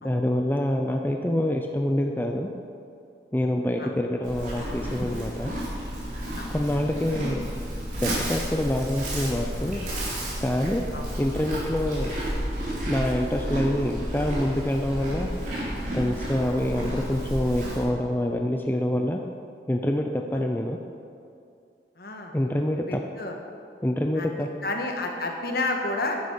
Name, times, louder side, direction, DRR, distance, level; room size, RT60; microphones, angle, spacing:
voice 1, 0.0-2.5 3.3-5.5 6.5-7.5 8.0-9.8 10.4-10.8 11.2-12.1 12.9-15.3 15.9-19.2 19.7-20.8 22.3-23.0 23.8-24.5, left 1 dB, 10° left, 3 dB, 0.5 m, -26 dB
Livestock farm animals working animals, 4.2-17.8, equal, 45° right, 3.5 m, -31 dB
voice 2, 22.0-22.4 22.9-23.4 24.2-26.1, left 2 dB, 55° left, 2 dB, 1.5 m, -31 dB
10.0 x 9.5 x 6.6 m, 2.6 s
head